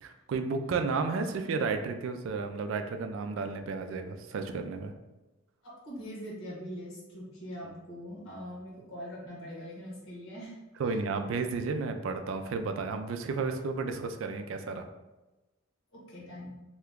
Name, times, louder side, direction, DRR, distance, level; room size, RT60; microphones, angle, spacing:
voice 1, 0.0-4.9 10.8-14.9, right 4 dB, 70° right, 7 dB, 0.3 m, -32 dB
voice 2, 5.6-10.6 10.8-10.9 15.9-16.6, equal, 85° left, -5 dB, 1.2 m, -42 dB
2.8 x 2.2 x 3.4 m, 1.1 s
head